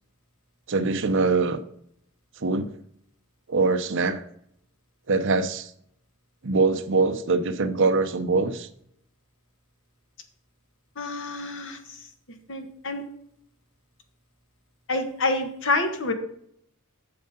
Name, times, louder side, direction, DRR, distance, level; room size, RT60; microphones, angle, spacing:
voice 1, 0.7-1.6 2.4-2.7 3.5-4.2 5.1-5.7 6.4-8.7, right 3 dB, 60° right, 8 dB, 0.8 m, -23 dB
voice 2, 11.0-11.8 12.5-13.0 14.9-16.1, left 2 dB, 60° left, 6 dB, 1.4 m, -27 dB
8.1 x 6.6 x 5.2 m, 0.69 s
head